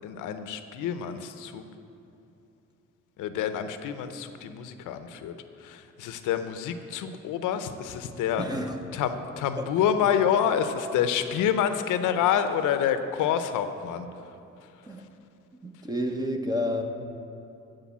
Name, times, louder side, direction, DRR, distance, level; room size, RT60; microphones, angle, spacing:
voice 1, 0.0-1.6 3.2-8.4 8.9-14.1, left 9 dB, 85° left, 10 dB, 0.7 m, -27 dB
voice 2, 8.4-8.8 9.6-9.7 14.8-15.0 15.6-16.8, left 1 dB, 15° right, 5 dB, 1.0 m, -30 dB
11.5 x 5.2 x 7.2 m, 2.8 s
cardioid pair, 90°, 30 cm